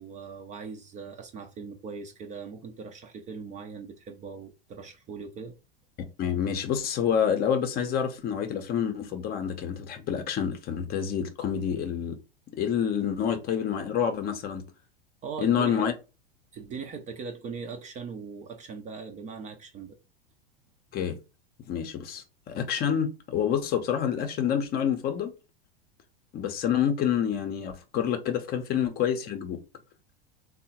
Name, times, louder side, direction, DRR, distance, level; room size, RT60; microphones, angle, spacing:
voice 1, 0.0-5.6 15.2-15.9 16.5-20.0, right 5 dB, 25° right, 0.5 m, -40 dB
voice 2, 6.2-12.2 12.6-14.6 15.4-15.9 20.9-21.2 21.7-25.3 26.3-29.6, left 8 dB, 30° left, 0.6 m, -28 dB
3.5 x 2.1 x 2.8 m
hypercardioid pair, 90°, 29 cm